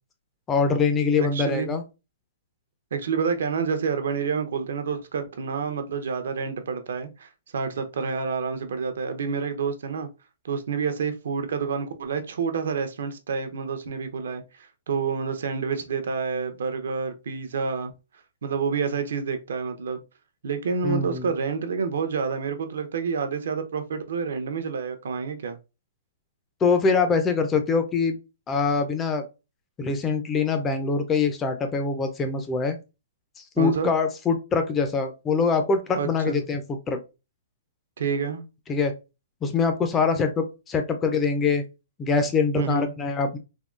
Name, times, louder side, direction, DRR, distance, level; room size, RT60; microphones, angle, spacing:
voice 1, 0.5-1.8 20.8-21.3 26.6-28.2 28.5-29.2 29.8-32.8 33.6-37.0 38.7-38.9 39.4-41.6 42.0-43.4, left 4 dB, 10° left, 0.3 m, -24 dB
voice 2, 1.2-1.7 2.9-10.1 10.4-17.9 18.4-20.0 20.4-25.6 33.6-33.9 36.0-36.4 38.0-38.4 42.6-42.9, right 5 dB, 65° right, 0.5 m, -28 dB
3.5 x 2.1 x 2.4 m
hypercardioid pair, 170°, 0 cm